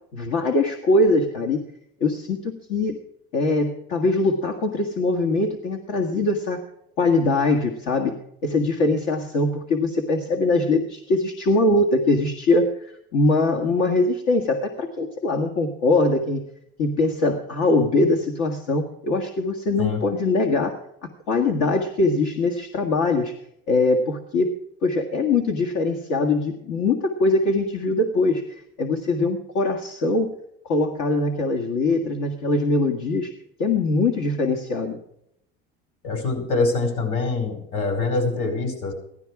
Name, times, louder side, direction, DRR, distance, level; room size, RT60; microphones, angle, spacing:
voice 1, 0.1-1.6 2.0-3.0 3.3-6.6 7.0-8.1 8.4-16.4 16.8-20.8 21.3-23.3 23.7-24.6 24.8-30.3 30.7-33.3 33.6-35.0, left 2 dB, 75° left, 3 dB, 1.8 m, -22 dB
voice 2, 36.0-38.9, left 3 dB, 50° left, 6 dB, 5.1 m, -24 dB
16.5 x 12.0 x 4.8 m, 0.76 s
cardioid pair, 120°, 30 cm